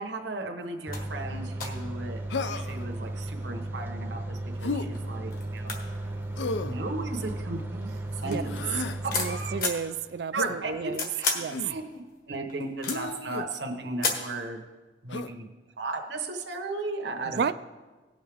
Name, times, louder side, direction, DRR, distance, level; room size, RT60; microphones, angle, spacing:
voice 1, 0.0-2.2 2.4-5.7 6.6-8.6 9.0-9.6 10.3-12.0 12.3-14.6 15.0-15.4 15.8-17.5, right 2 dB, 85° right, 3 dB, 1.1 m, -35 dB
sound 1, 0.6-0.7 0.9-1.1 1.6-2.5 3.2-3.8 4.5-4.6 5.0-5.1 5.3-7.3 7.8-9.9 10.5-11.5 11.9-13.3 14.0-14.4, left 4 dB, 50° left, 1.6 m, -33 dB
sound 2, 0.9-9.6, right 1 dB, 10° right, 0.6 m, -35 dB
Human voice, 2.3-2.9 4.6-4.9 6.4-6.8 8.4-9.0 10.3-10.6 11.5-11.8 12.8-13.5 15.1-15.3, left 3 dB, 85° left, 0.5 m, -33 dB
voice 2, 9.1-11.1 11.4-11.6 17.3-17.5, right 6 dB, 60° right, 13 dB, 0.3 m, -32 dB
18.0 x 6.4 x 3.5 m, 1.3 s
head